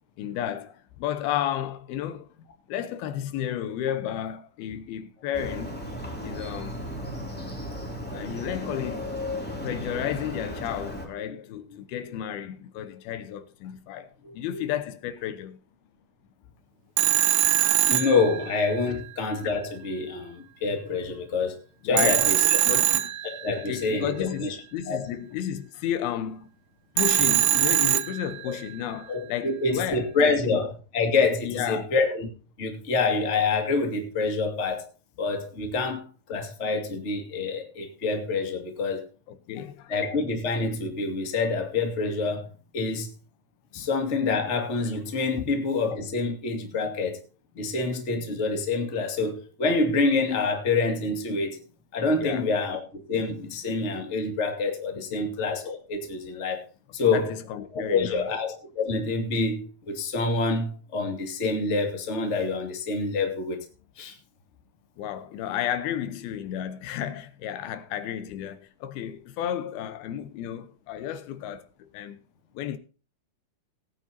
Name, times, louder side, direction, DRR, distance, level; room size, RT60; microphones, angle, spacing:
voice 1, 0.2-2.3 2.7-5.7 6.2-6.9 8.1-9.1 9.6-14.1 14.3-15.6 21.8-22.3 22.7-23.1 23.6-26.5 27.0-30.6 31.4-31.9 39.3-39.9 43.8-43.9 52.2-52.5 55.1-55.4 57.0-58.2 65.0-72.2 72.5-72.8, left 10 dB, 85° left, 2.9 m, -32 dB
Motorcycle, 5.3-11.1, left 1 dB, 5° left, 2.0 m, -35 dB
voice 2, 14.2-14.6 17.9-21.6 21.8-22.6 23.2-24.6 24.9-25.0 28.5-28.6 29.1-32.3 32.6-34.8 35.2-36.0 36.3-39.0 39.9-42.5 42.7-43.1 43.7-47.2 47.6-51.6 51.9-56.6 56.9-57.3 57.7-63.6 64.0-64.1, left 3 dB, 25° left, 1.8 m, -27 dB
Telephone, 17.0-18.9 22.0-23.8 27.0-28.6, right 14 dB, 75° right, 2.5 m, -23 dB
19.0 x 9.0 x 2.8 m
omnidirectional pair, 4.3 m